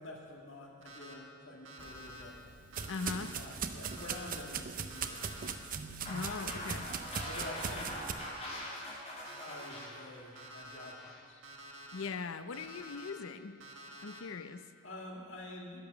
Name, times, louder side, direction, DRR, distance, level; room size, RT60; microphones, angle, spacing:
voice 1, 0.0-2.4 3.0-5.3 7.3-8.1 9.4-11.4 14.8-15.9, left 1 dB, 65° left, 0 dB, 1.9 m, -48 dB
Alarm, 0.8-1.1 1.6-2.2 2.7-3.3 3.8-4.4 4.9-5.5 6.0-6.6 7.1-7.7 8.2-8.7 9.2-9.8 10.3-10.9 11.4-12.0 12.5-13.1 13.6-14.2, equal, 65° right, 1.6 m, -50 dB
sound 1, 1.8-8.1, right 6 dB, 40° right, 0.6 m, -40 dB
voice 2, 2.9-3.4 6.1-6.9 11.9-13.5 14.0-14.6, left 4 dB, 80° left, 11 dB, 0.6 m, -40 dB
sound 2, 6.1-11.2, left 1 dB, 30° left, 2.6 m, -43 dB
10.5 x 10.5 x 6.7 m, 2.3 s
head